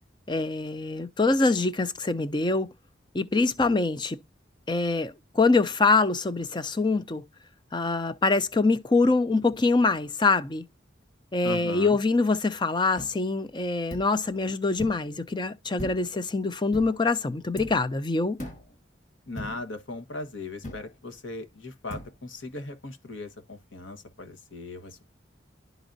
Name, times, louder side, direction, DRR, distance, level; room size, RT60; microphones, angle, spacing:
voice 1, 0.3-2.7 3.1-4.2 4.7-7.2 7.7-10.6 11.3-18.4, left 3 dB, 25° left, 0.5 m, -24 dB
voice 2, 11.4-12.0 19.3-25.1, left 2 dB, 85° left, 1.3 m, -38 dB
sound 1, 13.0-13.1 13.9-14.1 14.8-15.1 15.8-16.2 16.7-17.0 17.6-17.9 18.4-18.7 19.4-19.7 20.6-20.9 21.9-22.1, equal, 40° left, 1.5 m, -39 dB
11.5 x 4.0 x 2.6 m
head